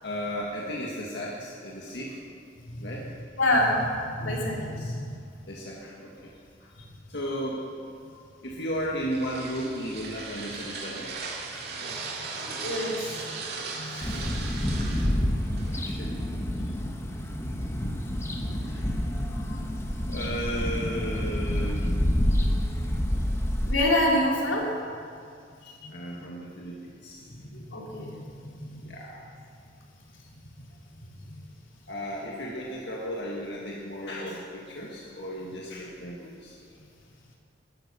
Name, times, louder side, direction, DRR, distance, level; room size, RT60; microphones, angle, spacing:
voice 1, 0.0-2.1 2.8-3.0 4.7-4.9 5.5-6.1 7.1-7.6 8.4-11.1 11.5-11.6 13.8-14.2 15.8-16.1 18.5-19.0 20.1-22.0 25.9-26.7 27.0-27.2 28.9-29.2 31.9-36.5, equal, 60° left, -4 dB, 1.8 m, -35 dB
voice 2, 3.4-5.1 8.1-8.2 12.4-13.4 13.7-14.2 19.5-19.6 23.7-24.6 25.8-26.2 27.5-28.9, left 1 dB, 85° left, -3 dB, 3.2 m, -28 dB
sound 1, 8.7-16.3, right 4 dB, 55° right, 2.2 m, -38 dB
sound 2, 14.0-23.7, equal, 15° left, 1.0 m, -28 dB
13.5 x 10.5 x 6.9 m, 2.3 s
head